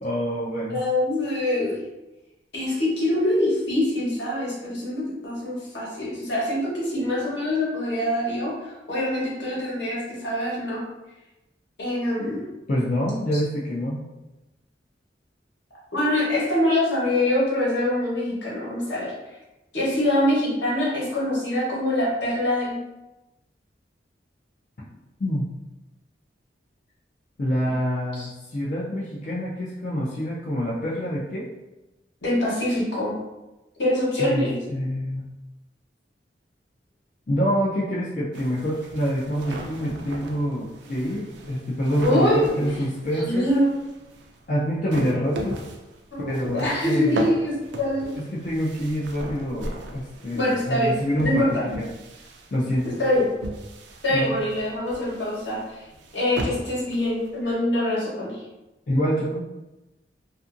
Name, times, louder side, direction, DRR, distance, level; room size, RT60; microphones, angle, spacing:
voice 1, 0.0-0.8 12.7-14.0 25.2-25.5 27.4-31.5 34.2-35.3 37.3-43.5 44.5-45.6 46.2-47.3 48.2-51.9 52.5-52.9 54.1-54.3 58.9-59.5, equal, 45° left, -7 dB, 0.4 m, -26 dB
voice 2, 0.7-1.7 2.5-10.8 11.8-12.4 15.9-19.1 19.7-22.7 28.2-28.3 32.2-33.1 33.8-34.6 42.0-42.8 43.1-43.7 46.1-48.1 50.3-50.9 51.2-51.6 53.0-53.3 54.0-55.8 56.1-58.4, left 1 dB, 75° left, -7 dB, 1.1 m, -24 dB
sound 1, 38.3-57.5, right 1 dB, 80° right, 0.4 m, -38 dB
2.6 x 2.5 x 2.5 m, 1.0 s
head